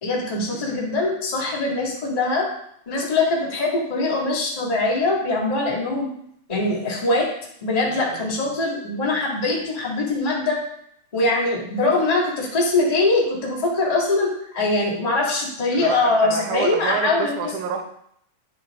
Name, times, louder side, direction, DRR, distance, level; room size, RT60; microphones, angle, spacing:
voice 1, 0.0-2.5 2.8-6.1 6.5-7.2 7.6-10.6 11.1-17.5, left 2 dB, 15° left, -5 dB, 1.6 m, -22 dB
voice 2, 7.9-8.4 15.7-17.8, right 7 dB, 70° right, 5 dB, 2.2 m, -29 dB
10.5 x 6.2 x 3.7 m, 0.71 s
omnidirectional pair, 3.9 m